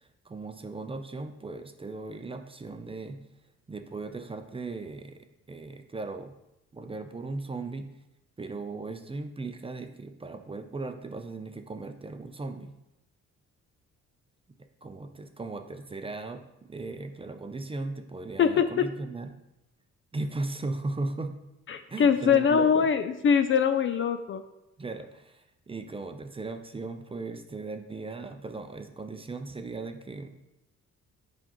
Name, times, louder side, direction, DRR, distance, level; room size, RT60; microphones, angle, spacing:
voice 1, 0.0-3.2 3.7-6.3 6.7-7.9 8.4-12.8 14.8-19.3 20.1-21.4 21.9-22.9 24.8-30.3, right 3 dB, 20° right, 7 dB, 0.5 m, -37 dB
voice 2, 18.4-18.9 21.7-24.4, left 7 dB, 45° left, 10 dB, 0.4 m, -23 dB
7.5 x 5.1 x 3.0 m, 0.91 s
cardioid pair, 90°, 30 cm